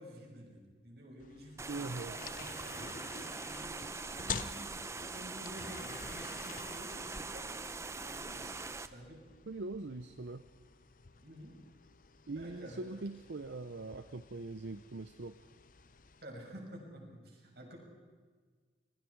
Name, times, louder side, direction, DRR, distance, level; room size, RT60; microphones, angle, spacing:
voice 1, 0.0-3.8 4.2-7.5 8.0-9.2 11.2-11.5 12.3-12.8 16.2-17.8, equal, 55° right, -1 dB, 6.0 m, -51 dB
sound 1, 1.2-16.2, left 6 dB, 45° left, 0.7 m, -49 dB
sound 2, 1.6-8.9, right 3 dB, 15° right, 0.6 m, -42 dB
voice 2, 1.7-2.1 9.5-10.4 12.3-15.4, right 3 dB, 75° right, 11 dB, 0.7 m, -42 dB
26.0 x 22.0 x 4.7 m, 1.5 s
head